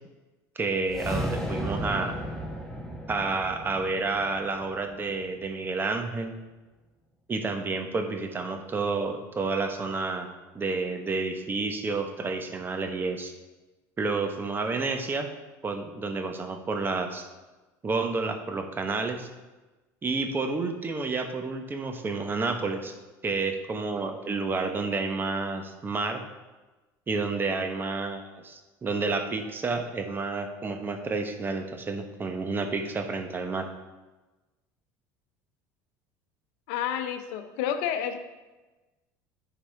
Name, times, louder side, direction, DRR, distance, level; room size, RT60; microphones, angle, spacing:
voice 1, 0.6-2.2 3.1-6.3 7.3-13.3 14.0-15.3 15.6-17.3 17.8-19.3 20.0-22.9 23.2-26.2 27.1-33.7, right 3 dB, 25° right, 6 dB, 1.0 m, -30 dB
sound 1, 0.8-5.2, equal, 5° left, 1.1 m, -34 dB
voice 2, 36.7-38.2, left 9 dB, 80° left, 8 dB, 0.7 m, -30 dB
10.0 x 4.9 x 3.4 m, 1.2 s
supercardioid pair, 100°, 8 cm